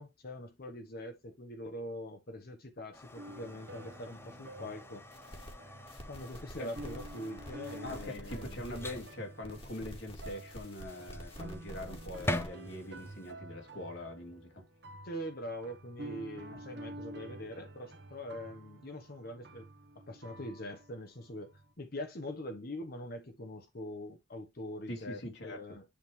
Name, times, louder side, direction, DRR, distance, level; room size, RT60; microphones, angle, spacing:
voice 1, 0.0-5.1 6.1-8.6 15.0-19.7 19.9-25.8, left 1 dB, 55° left, 1.0 m, -43 dB
sound 1, 2.9-13.3, left 1 dB, 15° left, 0.7 m, -44 dB
sound 2, 3.2-21.7, right 1 dB, 65° right, 1.5 m, -50 dB
sound 3, 5.1-5.5 5.9-9.1 9.4-12.5, equal, 30° left, 2.3 m, -48 dB
voice 2, 7.8-14.6 16.5-16.6 24.9-25.8, left 1 dB, 70° left, 2.9 m, -43 dB
10.0 x 3.6 x 3.2 m
head